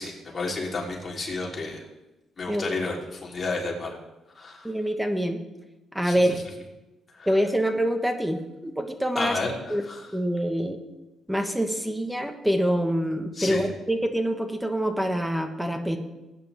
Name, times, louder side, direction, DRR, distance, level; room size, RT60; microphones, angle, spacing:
voice 1, 0.0-1.8 2.4-3.9 4.4-4.7 6.0-6.2 7.2-7.3 9.2-10.1 13.3-13.7, left 3 dB, 35° left, -2 dB, 3.6 m, -31 dB
voice 2, 4.6-5.4 5.9-6.4 7.3-9.4 9.7-9.8 10.1-10.8 11.3-16.0, equal, 5° right, 6 dB, 1.4 m, -25 dB
18.5 x 9.8 x 3.6 m, 1.0 s
cardioid pair, 90°, 0 cm